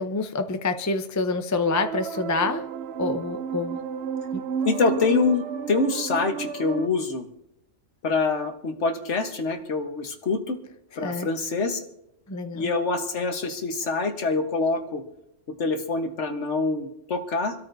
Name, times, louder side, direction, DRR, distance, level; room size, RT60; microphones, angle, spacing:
voice 1, 0.0-2.6 3.0-3.8 4.3-4.4 11.0-11.3 12.3-12.6, left 3 dB, 20° left, 7 dB, 0.5 m, -27 dB
sound 1, 1.6-6.9, right 7 dB, 60° right, 0.8 m, -31 dB
voice 2, 4.6-7.3 8.0-10.6 11.0-11.8 12.5-15.0 15.6-17.5, left 3 dB, 60° left, 5 dB, 1.5 m, -25 dB
26.5 x 13.5 x 2.7 m, 0.84 s
omnidirectional pair, 1.4 m